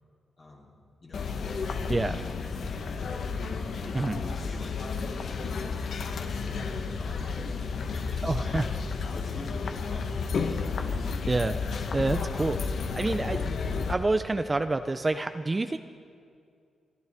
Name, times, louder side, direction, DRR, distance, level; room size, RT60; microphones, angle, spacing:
voice 1, 0.4-0.7 1.0-3.4 3.8-10.8, left 2 dB, 40° left, -5 dB, 2.9 m, -47 dB
sound 1, 1.1-13.9, left 5 dB, 65° left, 1.0 m, -32 dB
voice 2, 8.2-8.6 11.3-11.6 11.9-12.6 12.9-13.5 13.9-15.8, right 2 dB, 25° right, 9 dB, 0.4 m, -27 dB
29.5 x 11.0 x 3.5 m, 2.3 s
cardioid pair, 95°, 0 cm